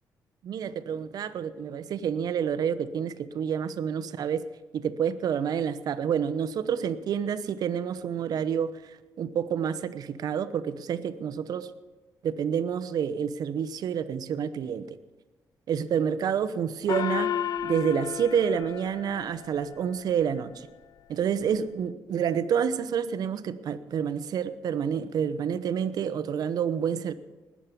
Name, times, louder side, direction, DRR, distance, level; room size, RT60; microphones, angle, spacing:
voice 1, 0.4-4.4 4.7-8.7 9.2-11.7 12.2-15.0 15.7-17.3 17.6-20.7 21.1-27.1, right 8 dB, 65° right, 13 dB, 0.9 m, -28 dB
Gong, 16.9-19.8, left 9 dB, 60° left, 0.5 m, -32 dB
20.0 x 7.5 x 7.0 m, 1.2 s
cardioid pair, 110°, 7 cm